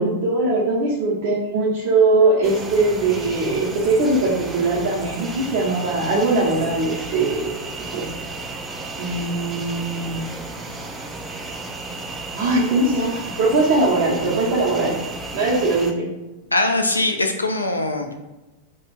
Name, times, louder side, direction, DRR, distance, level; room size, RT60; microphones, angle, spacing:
voice 1, 0.0-7.5 7.9-8.1 9.0-10.2 12.3-15.0 15.3-16.1, right 2 dB, 50° right, -7 dB, 0.7 m, -20 dB
sound 1, 2.4-15.9, right 3 dB, 20° right, 0.4 m, -33 dB
voice 2, 16.5-18.1, left 2 dB, 80° left, 5 dB, 0.3 m, -21 dB
2.4 x 2.2 x 3.1 m, 1.1 s
figure-of-eight pair, 90°, 0 cm